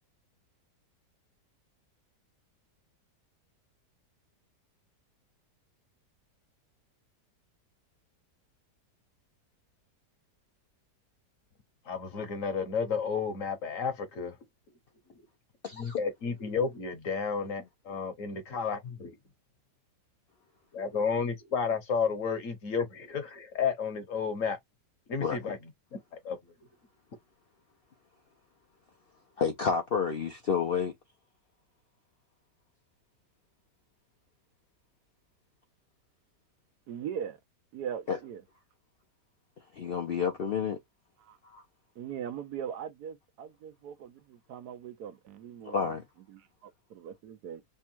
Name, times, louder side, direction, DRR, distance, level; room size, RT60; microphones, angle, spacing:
voice 1, 11.9-14.3 15.8-19.1 20.7-24.6 25.1-25.6 26.2-26.4, left 5 dB, 55° left, 1.1 m, -32 dB
voice 2, 15.6-16.0 18.6-18.7 25.2-25.5 29.4-30.9 38.1-38.2 39.7-40.8 41.5-41.6 45.6-46.0, left 6 dB, 85° left, 0.5 m, -30 dB
voice 3, 36.9-37.4 37.7-38.4 41.2-41.4 42.0-46.0 46.3-47.6, right 8 dB, 70° right, 1.1 m, -40 dB
3.5 x 2.2 x 4.3 m
omnidirectional pair, 1.8 m